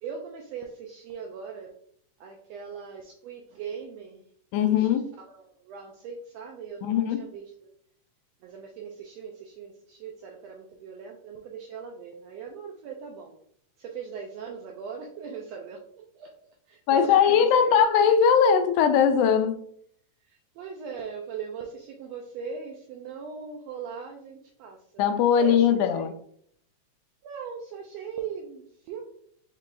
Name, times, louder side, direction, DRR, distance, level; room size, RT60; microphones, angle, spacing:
voice 1, 0.0-1.7 2.2-4.2 4.7-4.9 5.2-7.7 8.4-13.4 13.8-16.3 16.7-17.8 20.2-25.0 25.3-26.1 27.2-29.0, right 6 dB, 80° right, 1.5 m, -40 dB
voice 2, 4.5-5.0 6.8-7.2 16.9-19.6 25.0-26.1, left 7 dB, 85° left, 2.0 m, -20 dB
5.4 x 2.4 x 3.8 m
omnidirectional pair, 3.5 m